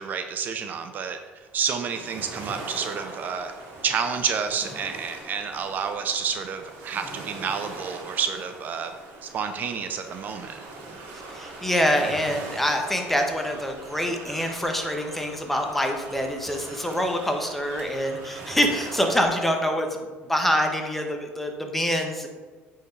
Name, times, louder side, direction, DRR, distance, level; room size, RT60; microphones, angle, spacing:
voice 1, 0.0-3.5 3.8-8.9 9.2-10.6, right 6 dB, 45° right, 7 dB, 0.6 m, -29 dB
sound 1, 1.4-19.3, right 2 dB, 75° right, 2.2 m, -41 dB
voice 2, 11.3-22.3, equal, 5° left, 3 dB, 1.1 m, -25 dB
8.3 x 4.8 x 4.7 m, 1.3 s
cardioid pair, 115°, 4 cm